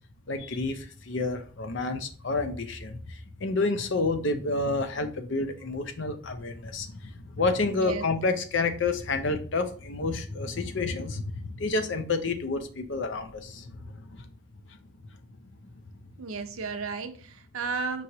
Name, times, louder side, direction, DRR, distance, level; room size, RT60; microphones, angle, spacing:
voice 1, 0.3-14.2 14.7-14.8, left 3 dB, 60° left, 0.6 m, -29 dB
voice 2, 7.7-8.1 16.2-18.0, right 4 dB, 85° right, 0.6 m, -33 dB
5.3 x 3.1 x 2.8 m
head